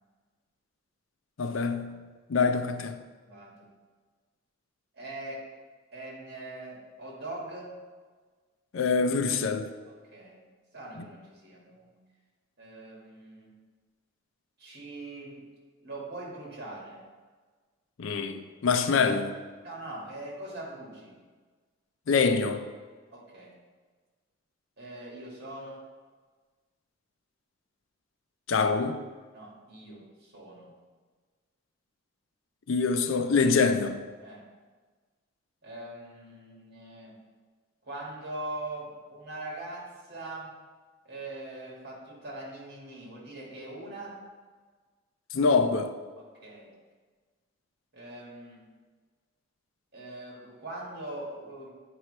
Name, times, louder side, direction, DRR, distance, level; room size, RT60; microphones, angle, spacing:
voice 1, 1.4-2.0 2.3-3.0 8.7-9.7 18.0-19.3 22.1-22.6 28.5-29.0 32.7-34.0 45.3-45.9, left 4 dB, 75° left, 0.5 m, -25 dB
voice 2, 3.2-3.7 4.9-5.5 5.9-7.7 9.9-10.4 10.7-12.0 12.6-13.5 14.6-15.4 15.8-17.0 19.6-21.2 23.1-23.5 24.8-25.8 29.3-30.7 34.2-34.5 35.6-37.2 37.8-40.6 41.1-44.2 46.2-46.7 47.9-48.7 49.9-51.7, right 2 dB, 55° right, 2.0 m, -42 dB
9.0 x 4.5 x 3.3 m
head